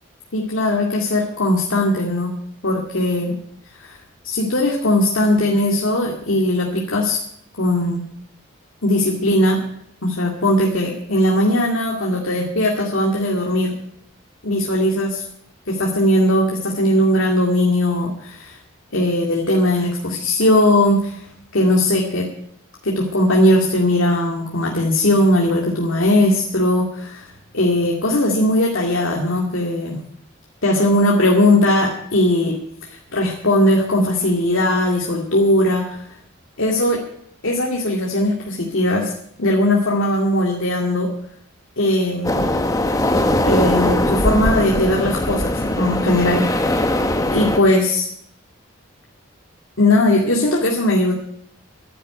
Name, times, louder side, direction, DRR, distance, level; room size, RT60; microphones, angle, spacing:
voice 1, 0.3-2.3 2.6-3.4 3.8-4.0 4.2-7.2 7.6-8.0 8.8-9.6 10.0-13.7 14.4-15.2 15.7-18.6 18.9-21.2 21.5-22.3 22.8-30.0 30.6-32.5 32.9-36.1 36.6-37.0 37.4-39.1 39.4-41.1 41.8-42.5 43.4-46.9 47.3-48.1 49.8-51.1, left 1 dB, 75° left, -1 dB, 2.3 m, -19 dB
sound 1, 42.2-47.6, left 1 dB, 15° left, 1.1 m, -20 dB
11.5 x 10.0 x 9.2 m, 0.69 s
head